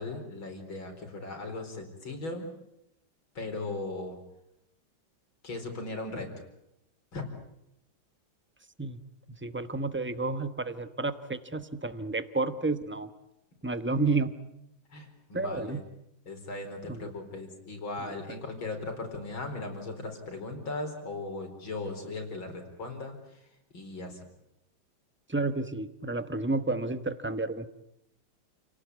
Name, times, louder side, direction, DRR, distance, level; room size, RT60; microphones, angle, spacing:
voice 1, 0.0-2.5 3.4-4.2 5.4-6.3 7.1-7.3 14.9-15.8 16.3-23.5 23.7-24.2, left 2 dB, 85° left, 4 dB, 5.2 m, -38 dB
voice 2, 9.4-13.1 13.6-14.4 15.3-15.8 16.9-17.0 25.3-27.7, right 3 dB, 10° right, 11 dB, 0.7 m, -31 dB
29.0 x 18.0 x 9.5 m, 0.83 s
omnidirectional pair, 2.1 m